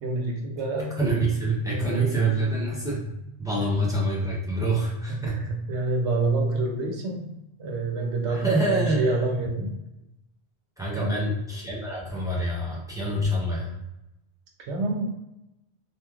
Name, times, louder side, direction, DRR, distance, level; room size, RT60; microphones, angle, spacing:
voice 1, 0.0-1.0 1.7-2.1 3.6-3.7 5.1-9.7 10.9-11.3 14.6-15.1, right 3 dB, 90° right, 2 dB, 1.0 m, -28 dB
voice 2, 1.0-3.1 3.4-5.4 8.3-9.3 10.8-13.7, right 1 dB, 5° right, -6 dB, 0.5 m, -26 dB
3.0 x 2.4 x 2.3 m, 0.90 s
omnidirectional pair, 1.1 m